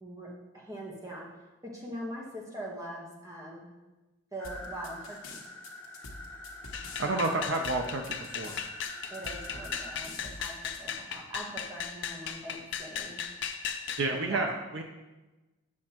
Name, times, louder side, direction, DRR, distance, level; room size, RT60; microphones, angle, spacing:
voice 1, 0.5-1.3 1.7-3.7 4.3-5.4 9.1-10.5 10.8-13.2 14.1-14.6, right 1 dB, 15° right, -3 dB, 1.1 m, -42 dB
sound 1, 4.4-10.8, left 3 dB, 75° left, 1.1 m, -46 dB
sound 2, 4.4-10.1, left 1 dB, 10° left, 0.9 m, -45 dB
sound 3, 6.7-14.1, left 7 dB, 55° left, 0.5 m, -37 dB
voice 2, 7.0-8.6 14.0-14.5 14.7-14.8, right 2 dB, 55° right, 4 dB, 0.5 m, -30 dB
8.4 x 6.2 x 3.0 m, 1.1 s
head